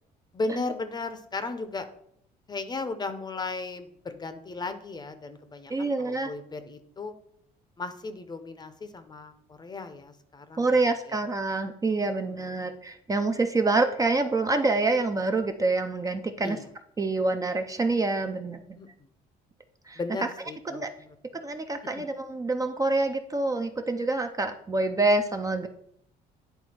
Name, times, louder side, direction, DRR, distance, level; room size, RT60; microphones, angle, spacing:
voice 1, 0.3-1.9 2.5-7.1 7.8-11.2 12.0-12.6 16.4-16.6 18.8-19.1 19.9-20.9 21.3-21.4 21.9-22.0, left 3 dB, 25° left, 10 dB, 0.7 m, -36 dB
voice 2, 5.7-6.3 10.6-16.6 17.0-18.8 19.9-20.0 20.7-20.9 21.3-25.7, right 3 dB, 20° right, 6 dB, 0.5 m, -26 dB
9.3 x 3.5 x 4.3 m, 0.70 s
cardioid pair, 110°, 17 cm